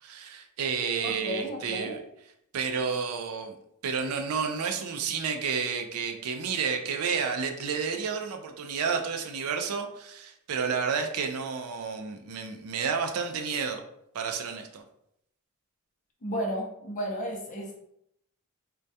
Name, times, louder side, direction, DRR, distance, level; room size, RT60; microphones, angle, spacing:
voice 1, 0.0-2.0 2.5-3.6 3.8-13.8 14.1-14.8, right 6 dB, 70° right, 4 dB, 0.4 m, -31 dB
voice 2, 1.0-2.0 16.2-17.7, equal, 35° left, -1 dB, 0.5 m, -33 dB
2.2 x 2.2 x 2.6 m, 0.76 s
head